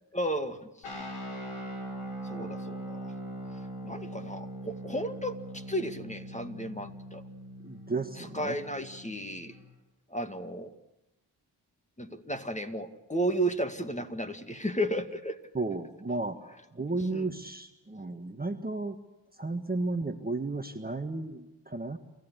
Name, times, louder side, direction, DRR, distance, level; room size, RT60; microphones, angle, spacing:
voice 1, 0.1-1.1 2.2-3.1 3.8-7.2 8.2-9.6 10.1-10.7 12.0-15.4 17.1-17.3, right 1 dB, 15° left, 7 dB, 2.2 m, -34 dB
sound 1, 0.8-9.7, right 1 dB, 80° left, 5.5 m, -41 dB
voice 2, 7.6-8.5 15.5-19.0 19.4-22.0, right 3 dB, 20° right, 7 dB, 1.6 m, -33 dB
28.5 x 14.5 x 8.2 m, 0.97 s
hypercardioid pair, 40°, 49 cm